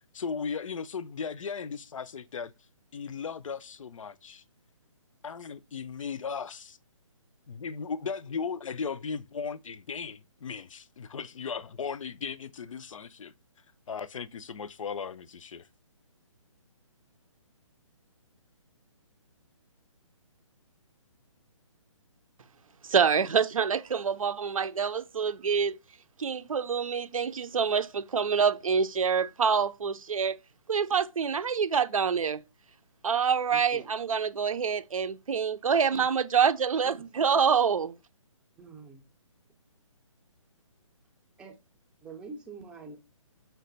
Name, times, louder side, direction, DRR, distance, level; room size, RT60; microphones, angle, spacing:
voice 1, 0.1-2.5 2.9-4.4 5.2-6.8 7.5-13.3 13.9-15.7, left 6 dB, 70° left, 0.4 m, -37 dB
voice 2, 22.8-25.7 26.2-30.4 30.7-32.4 33.0-38.0, right 6 dB, 80° right, 0.6 m, -26 dB
voice 3, 33.5-33.9 35.9-36.1 36.8-37.2 38.6-39.0 41.4-41.6 42.0-43.0, right 4 dB, 5° right, 0.5 m, -45 dB
5.7 x 2.2 x 3.9 m
hypercardioid pair, 150°, 17 cm